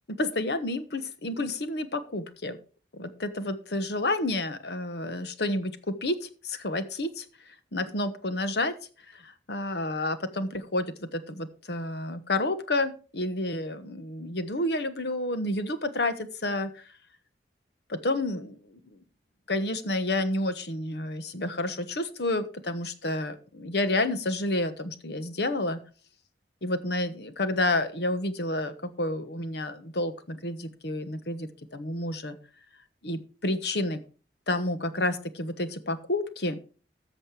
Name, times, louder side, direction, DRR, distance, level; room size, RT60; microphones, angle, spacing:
voice 1, 0.1-2.6 2.9-7.3 7.7-8.7 9.1-16.8 17.9-19.0 19.5-25.8 26.6-32.4 33.0-34.0 34.5-36.6, left 2 dB, 65° left, 11 dB, 1.2 m, -30 dB
14.0 x 6.4 x 4.9 m, 0.38 s
head